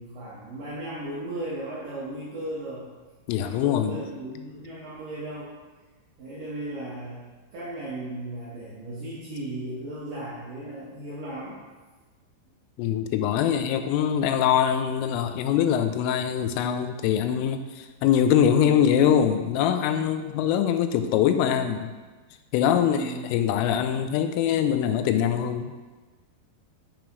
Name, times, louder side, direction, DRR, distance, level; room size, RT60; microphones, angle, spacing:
voice 1, 0.0-2.9 3.4-5.5 6.2-7.2 7.5-11.6 22.7-23.3, right 1 dB, 65° right, -8 dB, 2.2 m, -36 dB
voice 2, 3.3-4.0 12.8-21.9 22.5-25.7, left 9 dB, 90° left, 8 dB, 3.2 m, -23 dB
7.6 x 7.1 x 3.1 m, 1.3 s
omnidirectional pair, 5.7 m